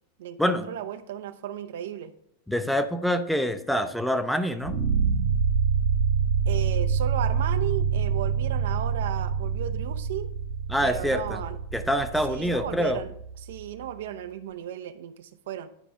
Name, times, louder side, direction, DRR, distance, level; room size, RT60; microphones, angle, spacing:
voice 1, 0.2-2.1 6.5-10.3 10.8-11.6 12.3-15.7, right 10 dB, 55° right, 11 dB, 0.5 m, -35 dB
voice 2, 2.5-4.8 10.7-11.4 11.7-13.0, equal, ahead, 9 dB, 0.5 m, -25 dB
sound 1, 4.6-13.7, right 6 dB, 80° right, 1.7 m, -26 dB
9.9 x 5.0 x 3.5 m, 0.71 s
figure-of-eight pair, 90°, 0 cm